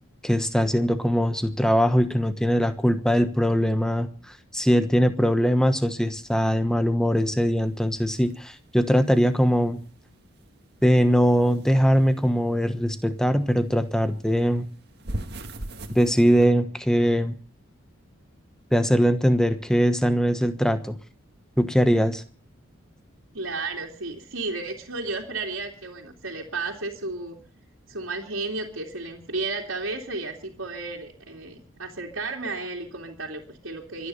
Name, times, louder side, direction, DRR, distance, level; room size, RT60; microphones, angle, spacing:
voice 1, 0.2-4.1 4.5-9.8 10.8-14.6 15.9-17.3 18.7-21.0 21.6-22.2, equal, 5° left, 9 dB, 1.2 m, -21 dB
sound 1, 7.7-10.6 10.8-13.7 14.0-16.5, right 1 dB, 50° right, 1.8 m, -39 dB
voice 2, 23.3-27.4 27.9-34.1, right 3 dB, 80° right, -3 dB, 2.8 m, -33 dB
24.5 x 9.9 x 5.6 m, 0.41 s
head